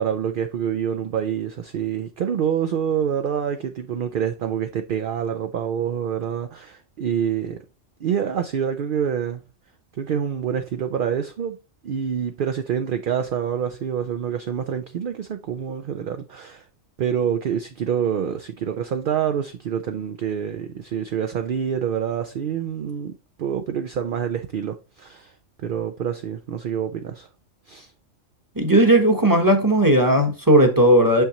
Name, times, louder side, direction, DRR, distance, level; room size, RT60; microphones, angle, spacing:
voice 1, 0.0-7.6 8.0-9.4 9.9-11.6 11.8-16.6 17.0-25.3 25.6-27.3 27.7-27.9, right 8 dB, 60° right, 0.5 m, -26 dB
voice 2, 28.6-31.2, right 1 dB, 15° right, 1.0 m, -16 dB
6.5 x 5.6 x 3.0 m
omnidirectional pair, 1.3 m